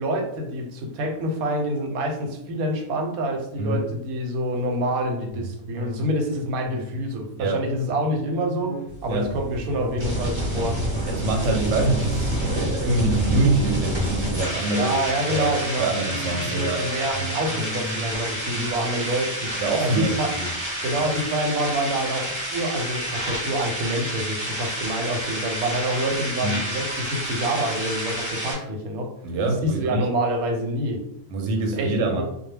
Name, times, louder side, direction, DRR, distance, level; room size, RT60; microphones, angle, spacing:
voice 1, 0.0-10.8 14.7-15.9 16.4-19.6 19.8-20.3 20.8-29.1 29.6-31.0 31.7-32.2, right 1 dB, 90° right, 3 dB, 1.1 m, -27 dB
sound 1, 5.3-21.0 21.5-21.6, equal, 45° left, 0.7 m, -38 dB
sound 2, 8.9-28.5, equal, 35° right, 0.5 m, -29 dB
voice 2, 11.1-14.9 15.3-16.8 19.6-20.5 21.1-21.2 26.4-26.6 29.2-30.1 31.3-32.2, right 2 dB, 65° right, 2 dB, 0.8 m, -25 dB
2.2 x 2.2 x 3.2 m, 0.81 s
omnidirectional pair, 1.5 m